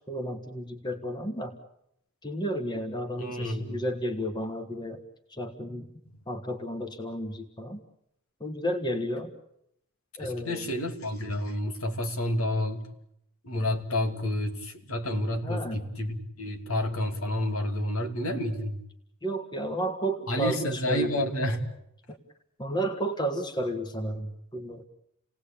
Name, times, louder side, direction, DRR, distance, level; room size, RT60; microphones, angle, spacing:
voice 1, 0.1-1.5 2.2-5.0 5.3-5.9 6.3-7.8 8.4-9.3 10.2-10.7 15.4-15.8 19.2-21.3 22.1-22.2 22.6-24.8, equal, 20° left, 7 dB, 1.7 m, -32 dB
voice 2, 3.2-3.8 10.2-12.8 13.4-18.8 20.3-21.7, left 1 dB, 70° left, 4 dB, 2.8 m, -30 dB
29.5 x 18.5 x 8.7 m, 0.77 s
head